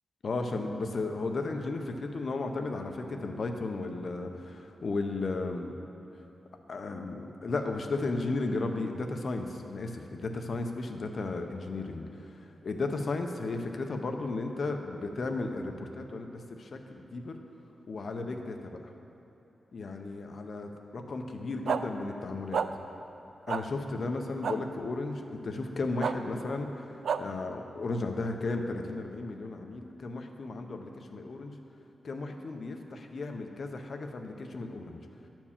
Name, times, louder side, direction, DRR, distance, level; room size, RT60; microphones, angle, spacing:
voice 1, 0.2-5.7 6.7-17.4 17.9-18.8 19.7-22.6 23.5-26.9 27.2-31.5 32.0-35.0, left 3 dB, 45° left, 4 dB, 0.7 m, -34 dB
sound 1, 21.7-21.8 22.5-22.7 23.5-23.6 24.4-24.6 26.0-26.1 27.0-27.2, right 7 dB, 85° right, 0.3 m, -28 dB
11.0 x 4.5 x 7.2 m, 3.0 s
wide cardioid pair, 175°, 0 cm